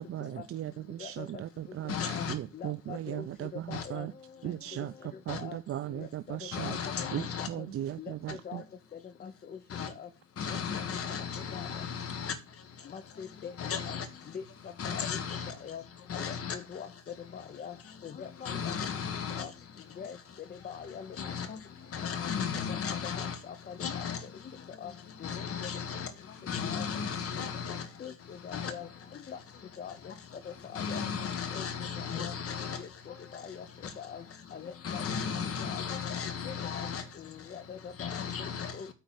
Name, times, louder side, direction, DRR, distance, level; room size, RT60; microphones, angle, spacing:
voice 1, 0.0-4.1 4.4-6.8 7.1-8.6, right 12 dB, 50° right, 0.5 m, -37 dB
voice 2, 1.9-2.3 3.7-3.8 5.3-5.4 6.5-7.5 9.7-9.9 10.4-12.4 13.6-14.1 14.8-15.5 16.1-16.6 18.4-19.4 21.2-21.5 21.9-23.4 23.8-24.2 25.2-26.1 26.5-27.9 28.5-28.7 30.7-32.8 33.8-33.9 34.8-37.0 38.0-38.8, left 7 dB, 50° left, 1.5 m, -35 dB
voice 3, 2.5-3.3 3.7-4.1 5.3-5.6 5.9-6.8 7.4-7.6 8.0-8.1 8.4-8.6 9.2-9.6 10.0-10.1 10.4-10.8 11.5-11.8 12.9-13.5 13.8-14.0 14.3-14.4 14.8-15.0 15.5-15.8 16.1-16.9 17.3-17.8 18.0-18.7 19.4-19.5 20.0-20.2 20.6-21.6 22.2-22.3 22.7-22.8 23.2-24.1 24.8-24.9 25.2-25.3 26.7-26.9 28.0-28.9 29.3-29.4 29.8-30.1 30.5-31.0 31.5-31.6 32.0-32.3 32.8-33.6 34.0-34.2 34.5-35.0 35.6-36.9 37.2-38.9, left 7 dB, 30° left, 0.7 m, -43 dB
9.0 x 4.2 x 7.3 m
cardioid pair, 150°, 30 cm